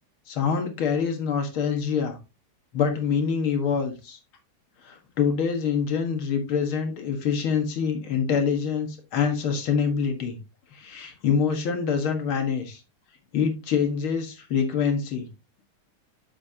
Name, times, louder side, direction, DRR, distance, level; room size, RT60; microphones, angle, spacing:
voice 1, 0.3-2.2 2.7-4.2 4.8-10.4 10.7-12.8 13.3-15.3, left 6 dB, 70° left, 5 dB, 2.3 m, -25 dB
7.7 x 7.5 x 2.8 m, 0.26 s
omnidirectional pair, 2.4 m